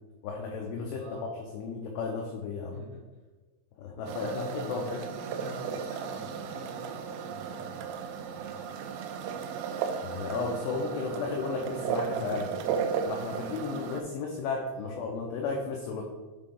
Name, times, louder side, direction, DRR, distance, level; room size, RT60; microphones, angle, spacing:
voice 1, 0.2-1.0 1.5-2.8 3.8-5.0 10.0-12.5 13.1-16.0, left 4 dB, 85° left, 0 dB, 2.4 m, -34 dB
voice 2, 0.9-1.3 2.7-3.0 4.1-9.4 14.7-15.0, equal, 65° right, -7 dB, 2.2 m, -46 dB
sound 1, 4.1-14.0, right 7 dB, 90° right, 3.2 m, -35 dB
8.8 x 3.8 x 3.7 m, 1.2 s
omnidirectional pair, 5.8 m